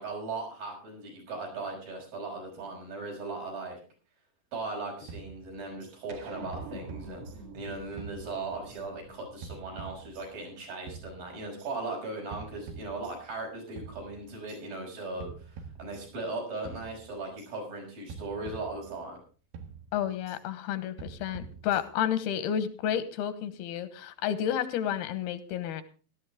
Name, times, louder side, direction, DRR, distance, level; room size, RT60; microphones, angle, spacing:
voice 1, 0.0-3.8 4.5-7.2 7.5-19.2, right 3 dB, 65° right, -1 dB, 7.7 m, -38 dB
sound 1, 5.1-6.0 6.5-7.7 8.0-8.8 9.4-10.5 10.9-11.7 12.3-13.5 13.8-14.6 15.2-16.4 16.7-17.5 18.1-19.3 19.5-20.4 21.0-22.1, right 5 dB, 85° right, 3.6 m, -46 dB
sound 2, 6.1-10.8, right 2 dB, 45° right, 2.8 m, -46 dB
voice 2, 19.9-25.8, left 9 dB, 85° left, 12 dB, 3.1 m, -31 dB
17.0 x 13.0 x 3.5 m, 0.37 s
omnidirectional pair, 4.3 m